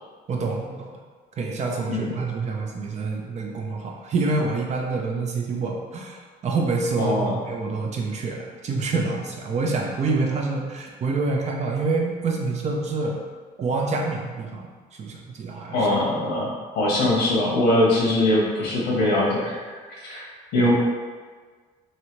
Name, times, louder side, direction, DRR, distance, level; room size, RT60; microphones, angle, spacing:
voice 1, 0.3-0.9 1.4-13.2 13.6-14.7 15.0-15.8, right 3 dB, 40° right, 0 dB, 0.6 m, -27 dB
voice 2, 1.9-2.2 7.0-7.3 15.7-19.5 20.0-20.3 20.5-20.7, left 1 dB, 90° left, -4 dB, 1.1 m, -22 dB
3.1 x 2.7 x 3.0 m, 1.5 s
cardioid pair, 110°, 17 cm